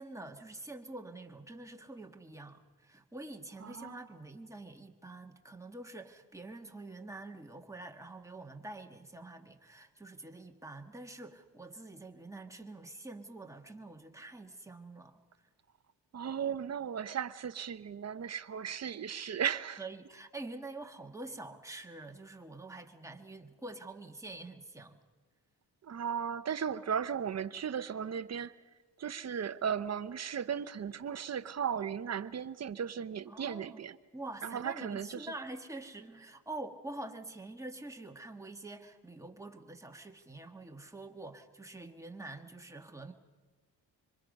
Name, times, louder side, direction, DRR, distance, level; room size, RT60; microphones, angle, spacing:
voice 1, 0.0-15.2 19.8-25.0 33.3-33.8 34.1-43.1, right 2 dB, 10° right, 1.6 m, -46 dB
voice 2, 3.6-4.2 16.1-19.9 25.8-28.5 29.0-34.0 34.4-35.3, right 8 dB, 40° right, 0.8 m, -36 dB
25.5 x 23.5 x 5.3 m
cardioid pair, 95°, 40 cm